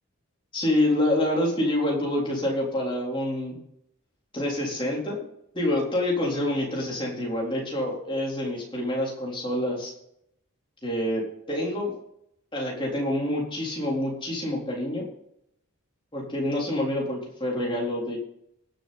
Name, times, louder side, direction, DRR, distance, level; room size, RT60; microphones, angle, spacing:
voice 1, 0.5-3.6 4.3-5.3 5.5-9.9 10.8-12.0 12.5-15.0 16.1-18.2, left 1 dB, 20° left, -3 dB, 3.9 m, -27 dB
19.5 x 7.1 x 4.3 m, 0.74 s
head